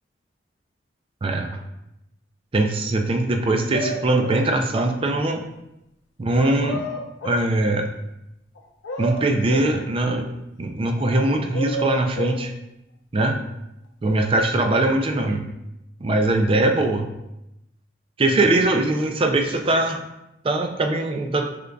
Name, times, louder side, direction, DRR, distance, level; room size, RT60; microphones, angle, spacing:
voice 1, 1.2-1.6 2.5-5.4 6.2-6.8 7.2-7.9 9.0-10.3 10.6-12.5 13.1-13.4 14.0-15.4 16.0-17.1 18.2-20.0 20.4-21.5, right 2 dB, 30° right, 5 dB, 0.4 m, -21 dB
sound 1, 3.7-4.5 6.3-7.5 8.6-9.7 11.0-12.4, right 1 dB, 80° left, 0.6 m, -30 dB
5.1 x 3.4 x 2.3 m, 0.88 s
head